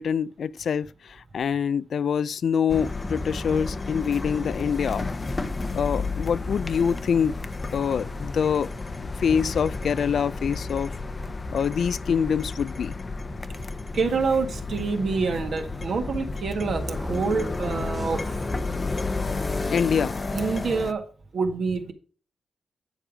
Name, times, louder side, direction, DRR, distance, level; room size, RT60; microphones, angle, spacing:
voice 1, 0.0-5.1 5.7-7.4 7.7-8.7 9.2-10.9 11.5-12.9 19.7-20.2, left 7 dB, 65° left, 0.4 m, -25 dB
sound 1, 2.7-20.9, left 3 dB, 30° left, 0.7 m, -31 dB
voice 2, 13.9-18.4 20.3-21.1 21.3-21.9, right 4 dB, 65° right, 1.8 m, -27 dB
10.0 x 5.3 x 4.9 m
wide cardioid pair, 120°, 0 cm